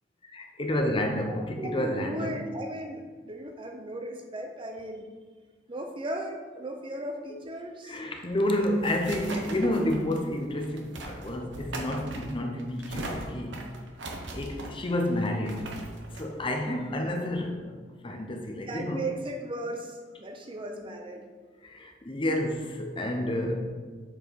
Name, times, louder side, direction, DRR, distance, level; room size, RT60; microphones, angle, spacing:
voice 1, 0.3-2.3 7.8-13.6 14.3-15.8 16.2-17.7 18.0-19.0 21.6-23.6, left 1 dB, 25° left, 3 dB, 0.8 m, -30 dB
voice 2, 1.3-5.1 5.7-8.0 18.6-21.3, right 1 dB, 25° right, 4 dB, 0.5 m, -36 dB
sound 1, 8.2-17.5, right 1 dB, 70° right, 1.0 m, -40 dB
7.8 x 4.5 x 4.6 m, 1.5 s
head